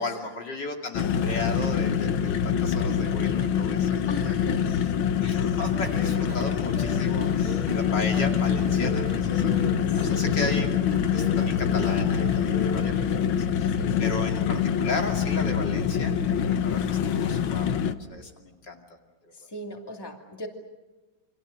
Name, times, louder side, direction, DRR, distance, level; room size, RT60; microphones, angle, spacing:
voice 1, 0.0-4.3 4.7-4.9 5.2-10.7 11.1-13.7 14.0-16.2 16.6-18.8 19.2-19.3, left 2 dB, 65° left, 2 dB, 3.2 m, -35 dB
sound 1, 0.9-17.9, left 8 dB, 90° left, 1.8 m, -25 dB
voice 2, 4.1-4.8 9.9-10.5 12.8-13.3 13.7-14.2 19.3-20.5, left 1 dB, 10° left, 2 dB, 2.5 m, -40 dB
sound 2, 5.7-12.9, equal, 50° right, 4.0 m, -38 dB
29.0 x 25.0 x 6.6 m, 1.1 s
omnidirectional pair, 2.1 m